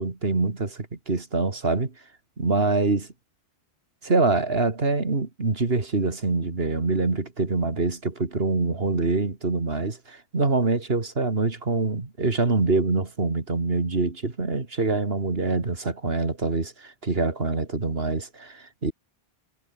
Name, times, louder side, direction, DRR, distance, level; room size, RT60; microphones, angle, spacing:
voice 1, 0.0-1.9 2.4-3.1 4.0-18.9, right 3 dB, 70° right, 2.8 m, -25 dB
omnidirectional pair, 1.0 m